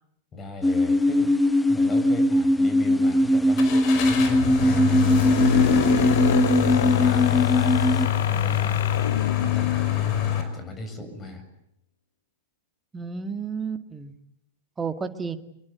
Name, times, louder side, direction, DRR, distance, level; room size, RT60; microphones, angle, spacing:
voice 1, 0.3-1.3 1.7-6.0 6.6-8.8 9.4-11.4, left 1 dB, 25° left, 8 dB, 7.2 m, -37 dB
sound 1, 0.6-8.1, left 1 dB, 5° left, 1.1 m, -21 dB
Car / Engine starting, 3.6-10.4, left 8 dB, 45° left, 5.3 m, -25 dB
sound 2, 5.0-10.7, left 10 dB, 70° left, 1.1 m, -28 dB
voice 2, 12.9-14.1 14.8-15.4, right 5 dB, 15° right, 8 dB, 2.2 m, -31 dB
25.5 x 22.5 x 9.5 m, 0.77 s
figure-of-eight pair, 95°, 0 cm